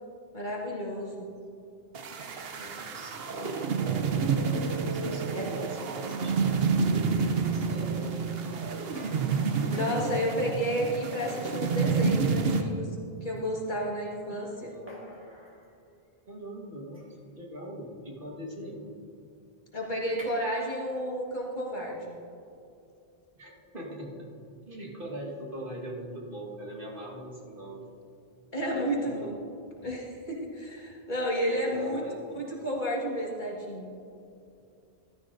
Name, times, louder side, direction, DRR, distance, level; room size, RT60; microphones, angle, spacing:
voice 1, 0.3-1.3 5.3-5.7 9.7-12.9 13.2-14.7 19.7-22.2 28.5-29.3 29.8-32.0 32.3-33.9, equal, 50° left, -3 dB, 1.9 m, -32 dB
sound 1, 1.9-12.6, right 5 dB, 75° right, 1.0 m, -29 dB
voice 2, 2.6-4.3 4.9-8.8 14.3-15.2 16.3-18.9 23.4-24.3 24.7-27.9 28.6-29.3 31.5-32.3, right 1 dB, 60° right, -2 dB, 1.8 m, -41 dB
sound 2, 8.9-12.4 13.4-13.5 14.9-15.7 16.9-17.3 20.0-20.3, left 1 dB, 10° right, 2.1 m, -47 dB
15.0 x 12.5 x 2.7 m, 2.6 s
omnidirectional pair, 1.0 m